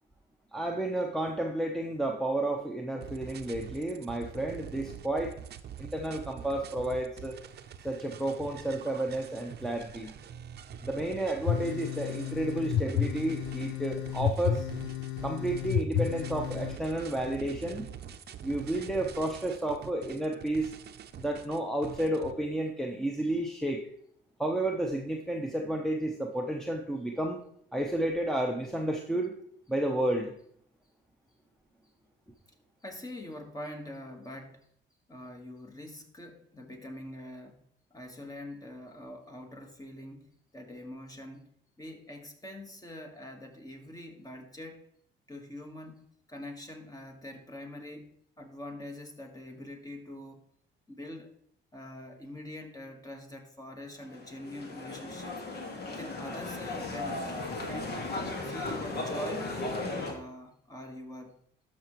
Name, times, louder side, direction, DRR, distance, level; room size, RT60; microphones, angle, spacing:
voice 1, 0.5-5.3 5.8-7.3 7.8-10.1 10.8-14.6 15.2-17.9 18.4-20.7 21.2-23.8 24.4-27.4 27.7-29.3 29.7-30.3, right 1 dB, ahead, 1 dB, 0.9 m, -31 dB
sound 1, 3.0-22.3, right 8 dB, 55° right, 0.7 m, -45 dB
sound 2, 11.4-16.8, left 10 dB, 85° left, 0.5 m, -31 dB
voice 2, 32.8-34.6 35.1-37.6 37.9-41.5 41.8-44.8 45.3-46.0 46.3-50.4 50.9-51.3 51.7-55.4 55.9-61.4, left 1 dB, 20° left, 3 dB, 1.6 m, -44 dB
sound 3, 54.0-60.1, left 2 dB, 55° left, 1.8 m, -36 dB
12.5 x 6.0 x 3.1 m, 0.66 s
cardioid pair, 90°, 20 cm